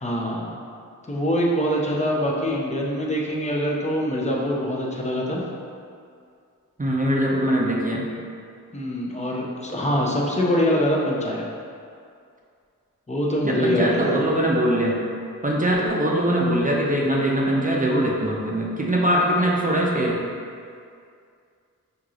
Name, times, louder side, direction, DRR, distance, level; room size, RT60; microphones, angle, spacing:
voice 1, 0.0-0.5 1.1-5.4 8.7-11.4 13.1-14.2, equal, 20° left, -2 dB, 0.7 m, -24 dB
voice 2, 6.8-8.1 13.4-15.0 15.4-20.2, right 1 dB, 25° right, -3 dB, 0.6 m, -22 dB
4.6 x 2.8 x 2.5 m, 2.3 s
cardioid pair, 45°, 33 cm